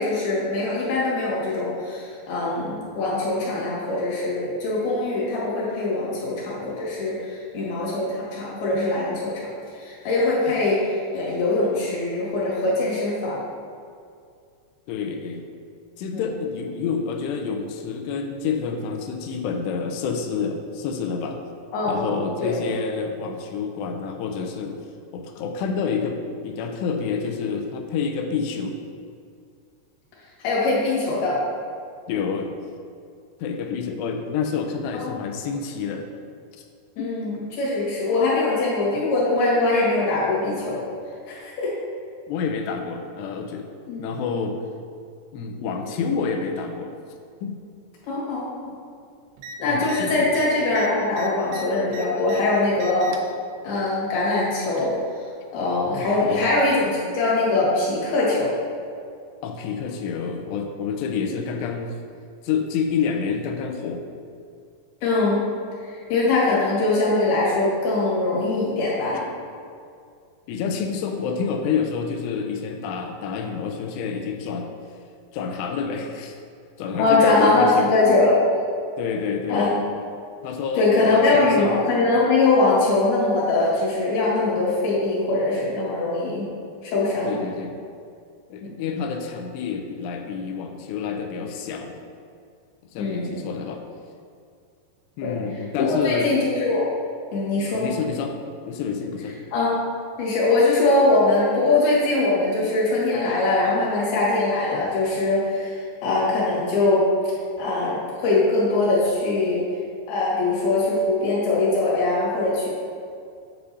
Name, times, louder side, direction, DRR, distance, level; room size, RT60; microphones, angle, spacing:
voice 1, 0.0-9.5 9.8-13.4 16.1-16.2 21.7-22.6 30.4-31.4 34.9-35.0 37.0-40.8 41.3-41.7 43.9-44.0 48.0-48.5 49.6-53.1 53.6-54.9 55.5-58.5 65.0-65.5 65.8-69.2 77.0-78.6 79.5-79.8 80.8-86.5 86.8-87.4 88.6-88.8 93.0-93.3 95.2-95.4 95.8-96.8 97.3-98.0 99.5-99.8 100.2-107.1 107.6-109.6 110.1-112.7, left 2 dB, 65° left, -7 dB, 3.5 m, -22 dB
voice 2, 14.9-15.4 16.0-21.4 21.8-24.8 25.1-28.8 32.1-32.6 33.4-36.1 36.6-36.7 37.0-37.1 42.3-43.7 44.0-44.6 45.3-46.9 47.4-47.6 49.7-50.3 56.0-56.5 59.4-62.0 62.4-64.1 70.5-74.7 75.3-76.4 76.8-77.9 79.0-79.7 80.4-81.8 87.2-87.8 88.5-92.0 92.9-93.8 95.2-96.3 97.6-98.4 98.7-99.4, left 6 dB, 85° left, 4 dB, 2.7 m, -28 dB
sound 1, 49.4-49.6 49.8-50.0 50.3-52.4 52.8-53.3 54.3-55.0 56.0-56.1, right 2 dB, 85° right, 2.8 m, -38 dB
8.8 x 6.8 x 2.7 m, 2.3 s
omnidirectional pair, 4.9 m